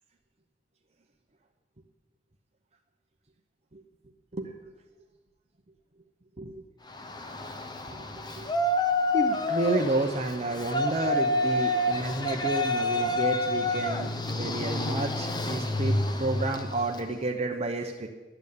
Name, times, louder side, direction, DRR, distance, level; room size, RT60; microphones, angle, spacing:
Yell, 6.9-17.1, left 1 dB, 25° left, 0.9 m, -28 dB
voice 1, 7.9-8.5 9.1-18.1, right 2 dB, 35° right, 3 dB, 0.8 m, -31 dB
12.0 x 9.0 x 8.6 m, 1.3 s
head